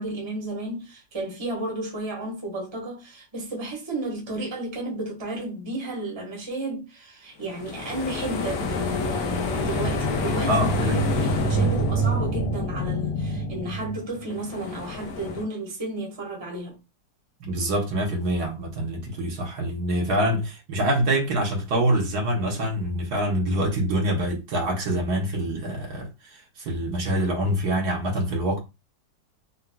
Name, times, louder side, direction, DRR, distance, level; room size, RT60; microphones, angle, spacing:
voice 1, 0.0-16.8, right 1 dB, 20° right, 0.9 m, -32 dB
sound 1, 7.5-15.4, equal, 70° left, 1.0 m, -27 dB
voice 2, 10.5-11.0 11.5-11.7 17.4-26.1 26.6-28.6, right 1 dB, 65° right, 1.3 m, -25 dB
3.8 x 2.3 x 2.2 m
omnidirectional pair, 1.9 m